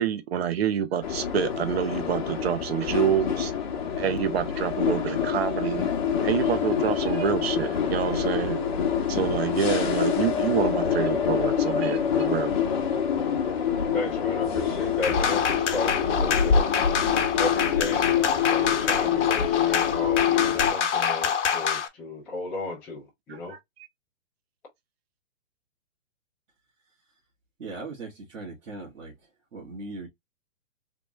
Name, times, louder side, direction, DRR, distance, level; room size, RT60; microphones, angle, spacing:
voice 1, 0.0-3.5 4.0-5.8 6.2-8.6 9.1-12.5 23.3-23.6, right 9 dB, 55° right, 0.8 m, -27 dB
sound 1, 1.0-20.7, left 7 dB, 40° left, 0.9 m, -26 dB
voice 2, 13.9-16.6 17.4-23.5, left 2 dB, 5° left, 0.4 m, -34 dB
sound 2, 15.0-21.9, left 7 dB, 65° left, 1.0 m, -26 dB
voice 3, 27.6-29.1 29.5-30.1, right 3 dB, 90° right, 1.7 m, -39 dB
3.6 x 2.5 x 3.0 m
hypercardioid pair, 150°, 38 cm